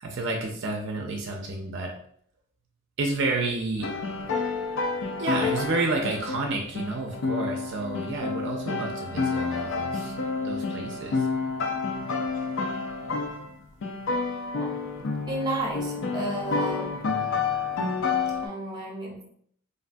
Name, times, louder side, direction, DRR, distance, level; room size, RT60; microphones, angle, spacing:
voice 1, 0.0-1.9 3.0-3.9 5.2-10.1 10.4-11.3, right 2 dB, 60° right, 1 dB, 0.5 m, -30 dB
sound 1, 3.8-13.5 13.8-18.5, left 4 dB, 65° left, 0.4 m, -29 dB
voice 2, 15.3-16.9 18.4-19.3, right 1 dB, 20° right, -2 dB, 0.7 m, -32 dB
3.4 x 2.2 x 2.5 m, 0.63 s
head